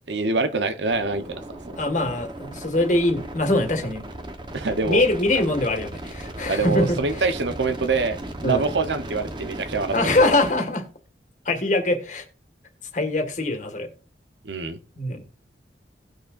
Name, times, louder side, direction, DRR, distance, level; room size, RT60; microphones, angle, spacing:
voice 1, 0.1-1.4 1.7-1.8 4.5-5.0 6.5-9.9 14.4-14.8, right 4 dB, 75° right, 1.0 m, -25 dB
sound 1, 0.9-10.5, right 1 dB, 25° right, 1.0 m, -36 dB
voice 2, 1.8-4.0 4.8-7.0 8.4-8.7 9.9-10.8 11.5-12.2 12.9-13.9 15.0-15.2, left 2 dB, 40° left, 1.9 m, -23 dB
18.0 x 6.5 x 2.6 m
head